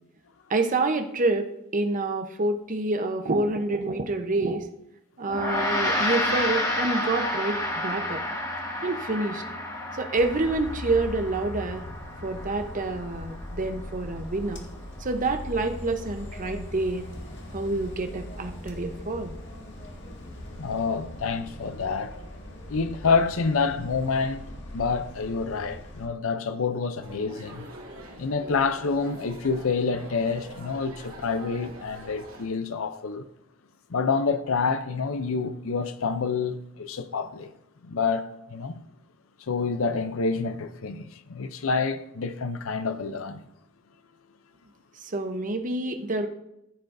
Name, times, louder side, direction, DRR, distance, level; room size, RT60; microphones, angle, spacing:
voice 1, 0.5-4.7 5.2-8.2 8.8-9.4 9.9-11.8 12.2-14.7 15.0-17.1 17.5-19.3 45.0-46.3, right 2 dB, 40° right, 0.9 m, -27 dB
Gong, 5.3-14.8, left 1 dB, 15° left, 1.5 m, -31 dB
sound 1, 10.1-26.1, left 1 dB, 60° left, 1.7 m, -40 dB
voice 2, 20.6-22.1 22.7-24.4 24.7-27.7 28.2-33.3 33.9-37.5 37.8-38.8 39.4-43.5, left 4 dB, 75° left, 0.6 m, -28 dB
sound 2, 27.0-32.4, right 1 dB, 80° right, 2.7 m, -44 dB
14.5 x 7.4 x 2.6 m
head